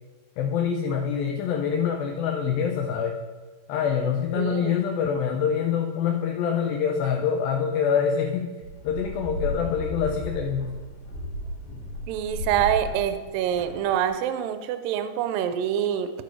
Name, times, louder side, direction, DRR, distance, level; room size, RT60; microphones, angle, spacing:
voice 1, 0.4-3.2 3.7-8.5 8.8-10.7, left 7 dB, 80° left, 2 dB, 2.3 m, -25 dB
voice 2, 4.4-4.8 12.1-16.1, right 9 dB, 80° right, 10 dB, 2.0 m, -26 dB
sound 1, 8.6-14.1, equal, 55° left, 2.9 m, -35 dB
14.0 x 5.2 x 4.5 m, 1.4 s
omnidirectional pair, 4.6 m